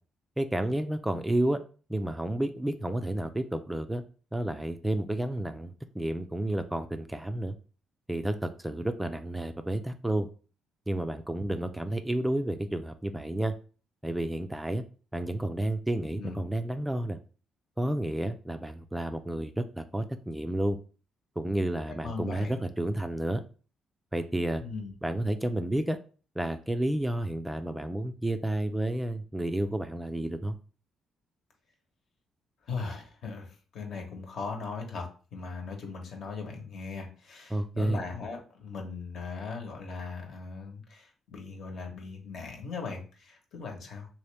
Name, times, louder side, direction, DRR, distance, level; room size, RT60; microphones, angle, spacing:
voice 1, 0.4-1.6 1.9-4.0 4.3-7.6 8.1-10.3 10.9-13.5 14.0-14.8 15.1-17.2 17.8-20.8 21.4-23.4 24.1-24.6 25.0-26.0 26.4-30.6 37.5-38.0, right 1 dB, 10° right, 8 dB, 0.3 m, -31 dB
voice 2, 21.9-22.6 24.6-25.0 32.7-44.1, left 4 dB, 65° left, 2 dB, 1.0 m, -39 dB
3.0 x 2.8 x 3.3 m, 0.37 s
cardioid pair, 90°, 0 cm